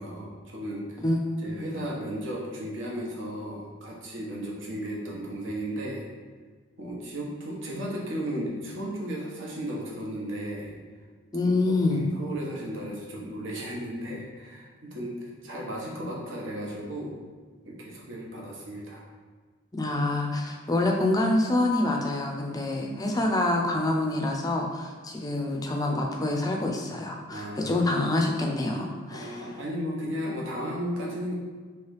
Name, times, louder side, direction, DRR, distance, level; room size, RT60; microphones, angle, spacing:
voice 1, 0.0-0.9 1.4-6.1 6.8-10.7 11.4-17.2 17.6-19.0 27.3-27.9 29.1-31.3, equal, 65° right, -4 dB, 1.0 m, -35 dB
voice 2, 1.0-1.7 11.3-12.0 19.7-29.5, left 2 dB, 20° left, 1 dB, 0.4 m, -26 dB
3.2 x 3.1 x 4.7 m, 1.5 s
head